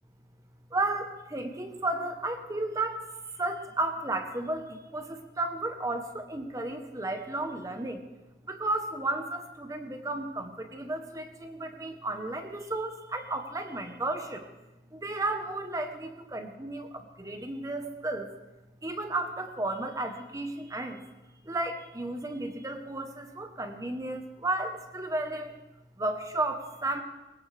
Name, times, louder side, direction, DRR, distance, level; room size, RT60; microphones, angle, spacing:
voice 1, 0.7-3.0 3.3-8.0 8.5-14.5 14.9-18.3 18.8-21.0 21.4-25.6 26.0-27.0, right 2 dB, 20° right, 6 dB, 1.0 m, -33 dB
20.5 x 17.5 x 3.4 m, 1.1 s
head